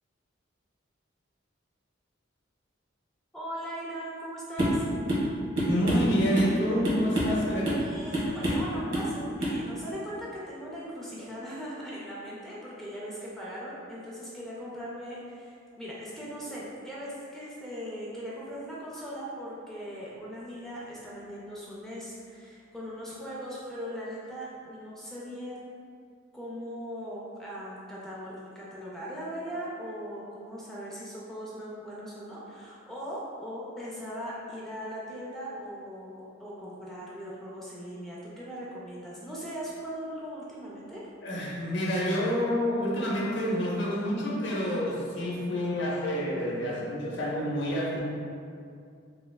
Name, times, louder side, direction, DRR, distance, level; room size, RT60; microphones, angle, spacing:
voice 1, 3.3-4.9 7.1-7.2 7.7-25.6 26.3-41.1, equal, ahead, -7 dB, 0.4 m, -39 dB
sound 1, 4.6-4.8 5.1-5.3 5.6-6.6 6.8-7.4 7.6-7.9 8.1-8.7 8.9-9.1 9.4-9.6, equal, 75° right, 1.3 m, -27 dB
voice 2, 5.6-7.8 41.2-48.0, equal, 60° left, -4 dB, 0.7 m, -28 dB
3.2 x 3.2 x 2.2 m, 2.3 s
head